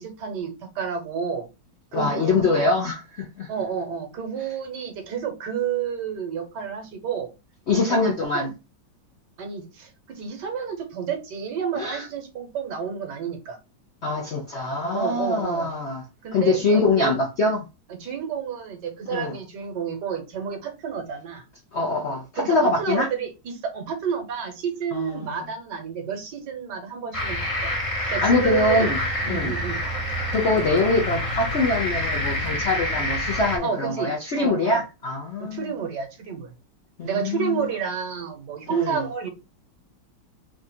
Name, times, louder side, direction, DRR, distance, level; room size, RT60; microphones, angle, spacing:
voice 1, 0.0-1.5 1.9-2.7 3.5-7.3 7.9-8.5 9.4-13.6 14.9-15.7 16.2-17.2 18.0-21.4 22.4-22.5 22.8-27.7 28.1-28.9 29.2-29.8 30.6-30.7 33.6-34.1 34.4-34.8 35.4-36.5 37.0-39.3, right 7 dB, 70° right, 1.5 m, -30 dB
voice 2, 1.9-3.5 7.7-8.5 11.8-12.1 14.0-16.0 16.3-17.7 19.1-19.4 21.7-23.1 24.9-25.3 28.0-29.0 29.3-29.5 30.3-35.7 37.0-37.7 38.7-39.0, left 3 dB, 60° left, 0.7 m, -24 dB
sound 1, 27.1-33.6, left 1 dB, 25° left, 0.7 m, -27 dB
3.6 x 2.5 x 4.2 m
omnidirectional pair, 2.0 m